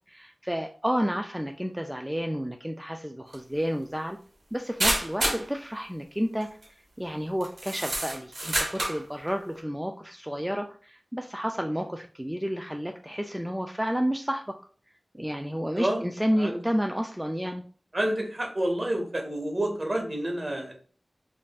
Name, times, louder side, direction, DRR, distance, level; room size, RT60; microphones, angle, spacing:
voice 1, 0.1-4.2 4.5-6.6 7.0-14.6 15.1-17.6, equal, 5° right, 4 dB, 0.3 m, -31 dB
sound 1, 3.3-3.4 4.8-5.5 6.4-6.6 7.4-9.0, right 1 dB, 85° right, 1.4 m, -28 dB
voice 2, 17.9-20.7, right 1 dB, 40° right, 1 dB, 1.1 m, -29 dB
5.3 x 2.5 x 2.3 m, 0.43 s
wide cardioid pair, 65°, 0 cm